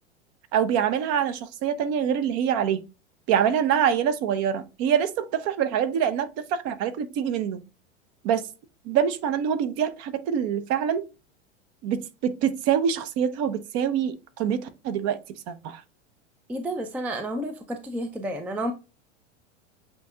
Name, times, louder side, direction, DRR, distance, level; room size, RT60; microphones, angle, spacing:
voice 1, 0.5-2.8 3.3-7.6 8.2-8.5 8.9-11.1 11.8-15.2 15.5-15.8, right 8 dB, 40° right, 0.7 m, -25 dB
voice 2, 16.5-18.7, right 1 dB, 5° right, 0.4 m, -31 dB
8.0 x 2.8 x 2.2 m
hypercardioid pair, 100°, 37 cm